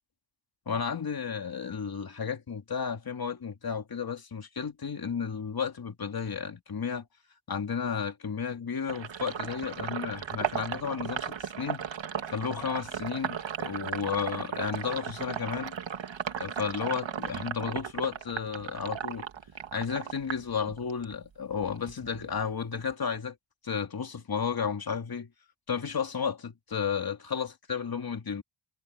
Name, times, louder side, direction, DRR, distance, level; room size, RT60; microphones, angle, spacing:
voice 1, 0.7-7.1 7.5-11.8 12.3-15.7 16.4-19.3 19.7-23.4 23.6-25.3 25.7-28.4, left 6 dB, 50° left, 2.8 m, -33 dB
Sink (filling or washing), 8.9-21.2 21.5-22.9, right 8 dB, 65° right, 1.7 m, -36 dB
wide cardioid pair, 165°, 48 cm